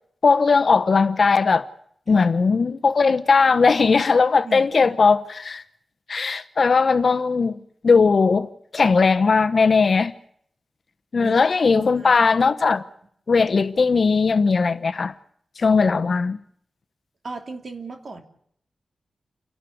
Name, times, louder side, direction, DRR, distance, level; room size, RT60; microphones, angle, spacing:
voice 1, 0.2-1.7 2.1-5.6 6.1-10.1 11.1-12.8 13.3-15.1 15.6-16.4, left 4 dB, 55° left, 1.0 m, -18 dB
voice 2, 4.4-5.0 11.2-12.1 17.2-18.2, right 3 dB, 50° right, 3.0 m, -36 dB
29.0 x 12.0 x 9.6 m
wide cardioid pair, 125°, 0 cm